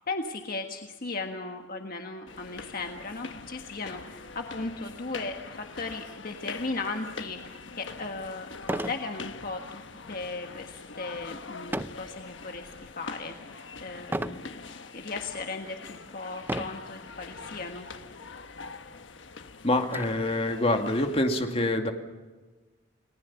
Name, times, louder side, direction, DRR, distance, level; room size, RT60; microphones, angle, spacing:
voice 1, 0.1-9.8 10.1-13.3 13.8-14.5 14.9-17.9, left 3 dB, 50° left, 4 dB, 1.5 m, -37 dB
sound 1, 2.3-21.2, left 4 dB, 75° left, 1.3 m, -43 dB
sound 2, 7.7-7.8 8.6-9.1 9.5-9.8 11.7-12.1 12.7-13.1 14.1-14.5 15.2-15.3 16.4-16.9 17.9-18.0 18.4-18.5 18.9-20.0, right 1 dB, 10° right, 0.7 m, -33 dB
voice 2, 19.6-21.9, left 1 dB, 30° left, 4 dB, 2.3 m, -26 dB
29.5 x 19.5 x 7.1 m, 1.2 s
head